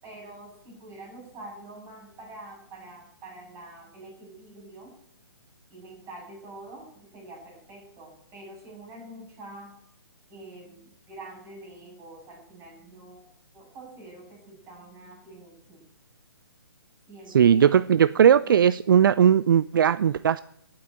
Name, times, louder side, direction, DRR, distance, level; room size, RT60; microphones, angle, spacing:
voice 1, 0.0-4.9 5.7-9.8 10.3-15.8 17.1-17.8 18.1-18.5, right 2 dB, 20° right, -1 dB, 8.0 m, -46 dB
voice 2, 17.3-20.4, right 8 dB, 55° right, 17 dB, 0.5 m, -18 dB
15.5 x 8.5 x 9.3 m, 0.74 s
figure-of-eight pair, 140°, 13 cm